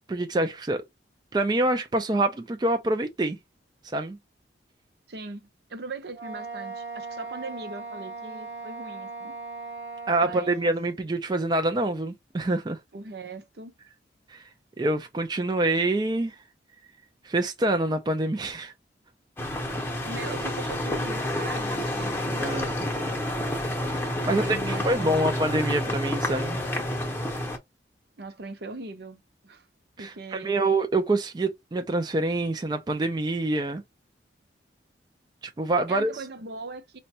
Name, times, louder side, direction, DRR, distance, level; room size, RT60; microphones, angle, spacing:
voice 1, 0.1-0.8 1.3-3.4 3.9-4.2 10.1-12.8 14.3-14.5 14.8-16.3 17.2-18.7 22.4-22.7 23.8-26.6 30.0-33.8 35.6-36.1, right 2 dB, 20° right, 0.3 m, -26 dB
voice 2, 5.1-9.3 10.2-10.7 12.9-13.7 19.7-23.5 24.2-25.3 28.2-29.7 30.0-30.6 35.9-37.0, right 3 dB, 60° right, 0.6 m, -40 dB
Wind instrument woodwind instrument, 6.1-10.7, right 3 dB, 90° right, 1.0 m, -38 dB
sound 1, 19.4-27.6, left 1 dB, 10° left, 0.7 m, -29 dB
4.9 x 2.2 x 2.7 m
head